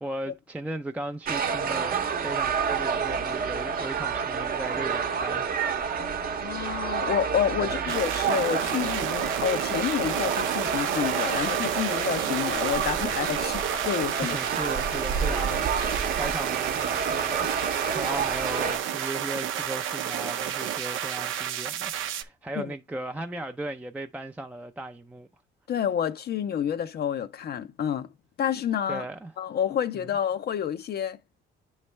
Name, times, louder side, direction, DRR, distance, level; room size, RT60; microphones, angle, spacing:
voice 1, 0.0-5.9 7.6-7.8 14.2-25.3 28.9-29.3 29.9-30.1, right 1 dB, 5° right, 0.4 m, -37 dB
sound 1, 1.3-18.8, right 6 dB, 45° right, 0.8 m, -29 dB
voice 2, 6.0-14.4 22.6-22.7 25.7-28.1 28.4-29.0 29.4-31.2, left 9 dB, 55° left, 0.5 m, -29 dB
sound 2, 7.9-22.2, right 10 dB, 85° right, 0.6 m, -31 dB
9.3 x 3.2 x 3.1 m
cardioid pair, 90°, 20 cm